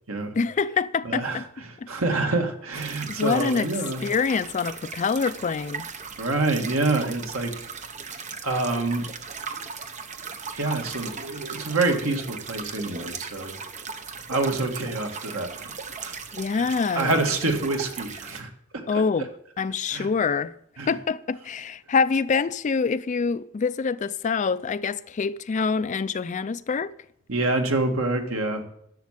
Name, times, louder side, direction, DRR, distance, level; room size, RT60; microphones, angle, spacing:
voice 1, 0.3-1.5 1.8-1.9 3.1-3.7 4.0-5.8 16.3-17.2 18.9-19.3 19.6-20.5 20.9-26.9, left 5 dB, 35° left, 0.4 m, -25 dB
voice 2, 1.1-1.4 1.9-4.0 6.2-7.5 8.4-9.0 10.5-13.5 14.3-15.7 16.0-16.1 17.0-18.5 18.9-19.0 19.9-20.1 20.8-20.9 27.3-28.6, right 2 dB, 70° right, 1.9 m, -26 dB
sound 1, 2.7-18.4, right 5 dB, 35° right, 0.9 m, -38 dB
11.5 x 7.1 x 7.3 m
head